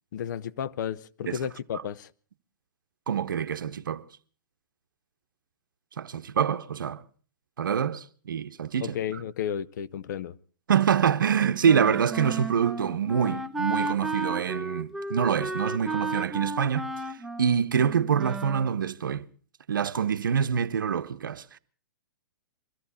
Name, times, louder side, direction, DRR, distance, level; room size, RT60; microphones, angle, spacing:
voice 1, 0.1-2.1 8.8-10.4, left 9 dB, 65° left, 0.7 m, -33 dB
voice 2, 3.1-4.0 6.0-7.0 7.6-9.2 10.7-19.3 19.7-21.6, right 7 dB, 90° right, 0.8 m, -26 dB
Wind instrument woodwind instrument, 11.6-18.7, right 2 dB, 5° right, 0.7 m, -33 dB
23.0 x 14.0 x 4.1 m
hypercardioid pair, 135°, 11 cm